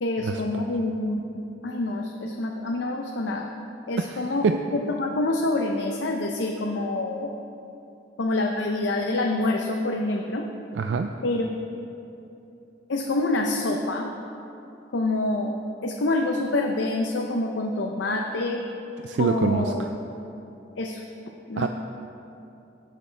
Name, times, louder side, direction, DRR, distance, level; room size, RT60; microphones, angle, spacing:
voice 1, 0.0-3.5 3.9-4.4 4.7-7.3 8.2-10.5 11.2-11.5 12.9-14.1 14.9-15.5 15.8-18.6 19.2-19.8 20.8-21.0 21.5-21.7, left 2 dB, 85° left, 2 dB, 0.6 m, -26 dB
voice 2, 4.0-4.6 10.8-11.1 19.0-19.9 21.6-21.7, right 5 dB, 80° right, 6 dB, 0.4 m, -25 dB
17.5 x 6.7 x 3.3 m, 2.8 s
head